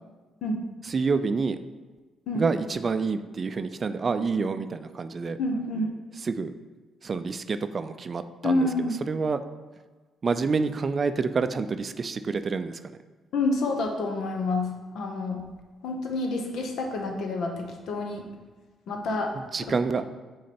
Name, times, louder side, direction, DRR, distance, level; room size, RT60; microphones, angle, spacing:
voice 1, 0.9-1.6 2.3-5.4 6.2-6.5 7.0-9.4 10.2-13.0 19.5-20.0, right 4 dB, 40° right, 11 dB, 0.4 m, -28 dB
voice 2, 5.4-5.9 8.4-9.0 13.3-15.4 15.8-18.3 18.9-19.4, left 2 dB, 75° left, 2 dB, 1.0 m, -28 dB
6.3 x 3.9 x 4.3 m, 1.3 s
cardioid pair, 90°, 0 cm